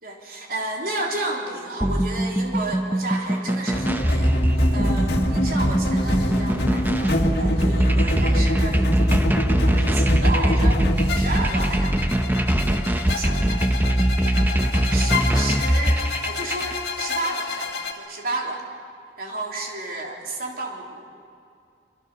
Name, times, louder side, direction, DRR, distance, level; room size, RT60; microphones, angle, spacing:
voice 1, 0.0-8.8 9.6-10.8 11.1-12.0 12.7-13.6 14.4-17.7 18.0-18.6 19.2-21.1, right 2 dB, 50° right, 0 dB, 3.7 m, -32 dB
sound 1, 1.8-16.7, right 1 dB, 10° right, 0.9 m, -22 dB
sound 2, 3.7-17.9, left 1 dB, 60° left, 2.3 m, -26 dB
26.0 x 25.5 x 6.3 m, 2.4 s
head